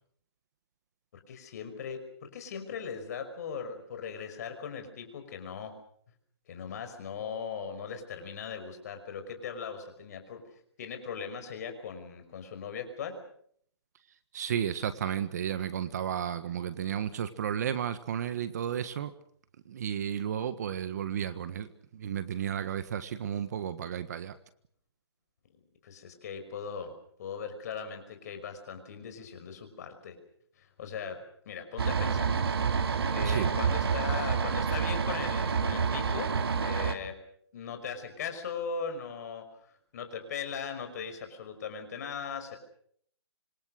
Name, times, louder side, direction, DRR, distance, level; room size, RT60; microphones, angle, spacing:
voice 1, 1.3-5.8 6.5-10.4 10.8-13.2 25.8-26.9 27.2-30.2 30.6-32.3 33.1-37.2 37.5-39.5 39.9-42.6, left 6 dB, 40° left, 7 dB, 5.7 m, -39 dB
voice 2, 14.3-19.1 19.6-24.4 33.2-33.5, right 9 dB, 40° right, 12 dB, 1.5 m, -33 dB
sound 1, 31.8-36.9, right 6 dB, 65° right, 2.8 m, -28 dB
26.5 x 23.5 x 6.5 m, 0.65 s
hypercardioid pair, 170°, 14 cm